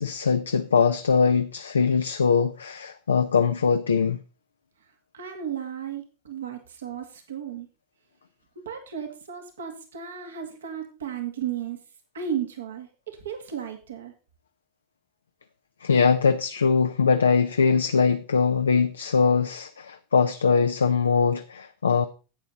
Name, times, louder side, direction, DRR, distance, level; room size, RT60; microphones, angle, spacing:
voice 1, 0.0-4.2 15.8-22.1, left 5 dB, 85° left, 0.5 m, -22 dB
voice 2, 5.1-7.7 8.6-11.8 12.1-14.1, right 8 dB, 85° right, 2.0 m, -34 dB
11.0 x 8.4 x 4.0 m
hypercardioid pair, 85°, 0 cm